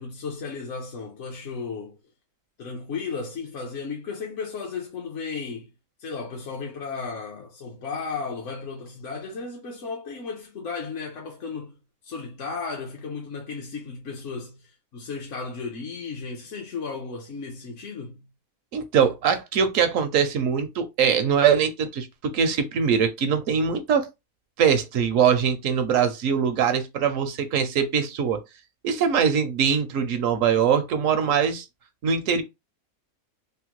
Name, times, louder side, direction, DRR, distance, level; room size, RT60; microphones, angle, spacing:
voice 1, 0.0-2.0 2.6-5.7 6.0-11.7 12.0-18.2, left 4 dB, 60° left, 1.0 m, -34 dB
voice 2, 18.7-24.1 24.6-28.4 28.8-31.6 32.0-32.4, right 7 dB, 70° right, 0.9 m, -22 dB
3.5 x 2.1 x 2.9 m
omnidirectional pair, 1.5 m